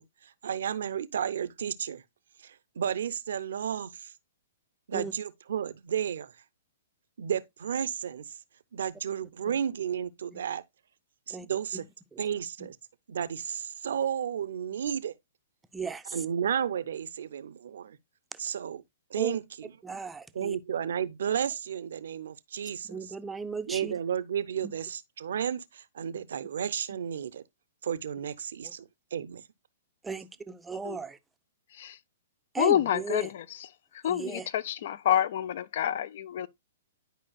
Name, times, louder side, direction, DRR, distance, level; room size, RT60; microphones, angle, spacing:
voice 1, 0.0-2.0 2.4-4.1 4.9-6.3 7.2-8.2 8.7-10.6 11.3-11.8 12.2-12.8 13.1-15.1 16.1-18.0 18.4-18.8 19.1-19.7 20.3-23.0 23.7-27.4 27.8-29.4, right 8 dB, 65° right, 0.6 m, -32 dB
voice 2, 15.7-16.2 18.3-18.4 19.1-19.4 19.8-20.6 22.9-23.9 24.6-24.7 28.6-28.7 30.0-31.2 32.5-33.3 34.0-34.5, right 5 dB, 10° right, 0.5 m, -36 dB
voice 3, 32.6-33.2 34.0-36.5, left 10 dB, 55° left, 0.5 m, -27 dB
11.0 x 5.1 x 2.3 m
hypercardioid pair, 115°, 0 cm